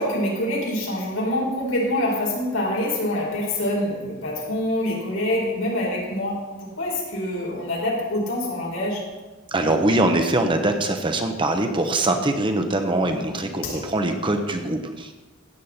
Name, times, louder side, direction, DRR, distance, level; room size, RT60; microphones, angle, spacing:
voice 1, 0.0-9.0 13.2-13.3 13.6-13.8, left 1 dB, 85° left, -3 dB, 4.3 m, -25 dB
voice 2, 9.5-15.1, right 2 dB, 25° right, 5 dB, 0.9 m, -23 dB
15.5 x 8.2 x 4.2 m, 1.2 s
head